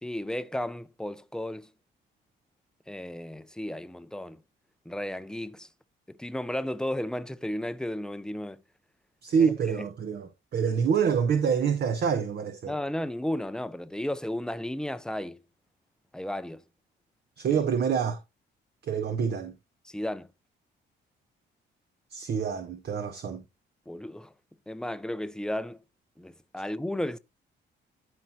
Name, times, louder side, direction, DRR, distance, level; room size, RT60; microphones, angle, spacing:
voice 1, 0.0-1.7 2.9-4.4 4.9-5.7 6.1-8.6 9.4-9.9 12.7-15.4 16.1-16.6 19.8-20.3 23.9-24.3 24.7-25.8 26.2-27.2, left 1 dB, 5° left, 0.6 m, -34 dB
voice 2, 9.2-12.7 17.4-18.2 18.9-19.5 22.1-23.4, right 6 dB, 55° right, 1.0 m, -26 dB
12.5 x 4.4 x 2.7 m
cardioid pair, 90°, 20 cm